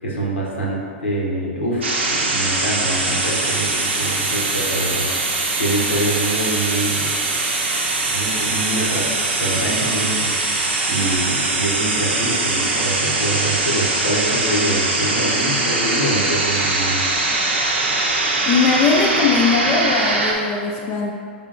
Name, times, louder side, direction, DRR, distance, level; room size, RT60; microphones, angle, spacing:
voice 1, 0.0-7.1 8.0-10.3 10.9-17.0, right 1 dB, 85° left, -4 dB, 1.0 m, -25 dB
sound 1, 1.8-20.3, right 2 dB, 80° right, 0.7 m, -21 dB
voice 2, 18.5-21.1, left 5 dB, 40° left, -1 dB, 0.5 m, -19 dB
5.4 x 3.7 x 2.5 m, 2.3 s
hypercardioid pair, 105°, 6 cm